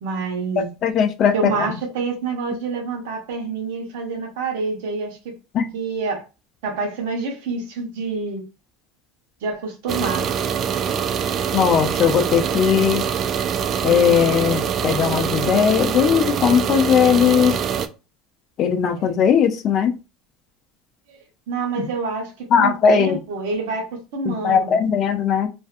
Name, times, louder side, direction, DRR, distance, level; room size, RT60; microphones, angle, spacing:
voice 1, 0.0-0.7 1.3-5.4 5.7-6.2 6.6-8.4 9.4-10.3 19.0-19.1 21.1-21.2 21.5-22.3 22.6-23.8 24.1-24.8, right 4 dB, 75° right, 0.9 m, -27 dB
voice 2, 0.6-1.7 5.5-5.7 11.5-13.0 13.8-17.5 18.6-19.9 21.8-21.9 22.5-23.2 24.3-25.5, left 7 dB, 50° left, 0.5 m, -18 dB
sound 1, 9.9-17.9, right 7 dB, 45° right, 0.3 m, -24 dB
2.5 x 2.2 x 2.4 m
hypercardioid pair, 90°, 0 cm